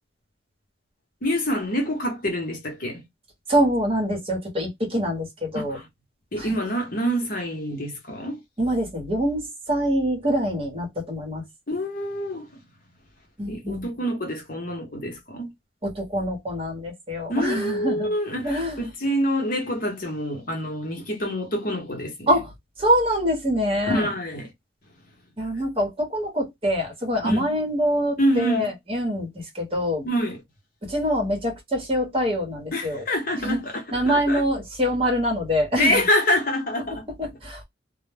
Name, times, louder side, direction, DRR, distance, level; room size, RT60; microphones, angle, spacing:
voice 1, 1.2-3.1 5.5-5.9 6.3-8.4 11.7-12.5 13.5-15.5 17.3-22.3 23.8-24.5 27.2-27.5 28.2-28.7 30.0-30.4 32.7-34.4 35.8-37.1, equal, 45° left, 0.8 m, -26 dB
voice 2, 3.5-5.8 6.4-6.5 8.6-11.4 13.4-13.9 15.8-18.1 18.4-18.8 22.3-22.5 22.8-24.1 25.4-30.1 30.8-33.0 33.3-33.6 33.9-36.0 37.2-37.6, equal, 30° right, 0.9 m, -25 dB
2.1 x 2.0 x 3.3 m
head